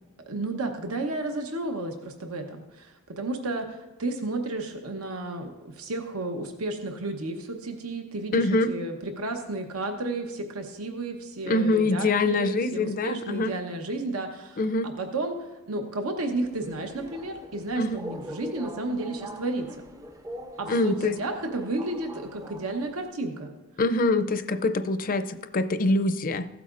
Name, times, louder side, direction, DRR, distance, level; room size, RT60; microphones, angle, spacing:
voice 1, 0.3-15.4 15.7-19.8 20.6-23.5 26.0-26.1, right 2 dB, 80° right, 5 dB, 0.9 m, -32 dB
voice 2, 8.3-8.7 11.5-13.5 14.6-14.9 17.8-18.0 20.7-21.2 23.8-26.5, left 2 dB, 40° left, 10 dB, 0.5 m, -24 dB
Subway metro underground, 16.3-23.1, right 1 dB, 15° right, 0.5 m, -43 dB
15.5 x 8.3 x 2.5 m, 1.1 s
head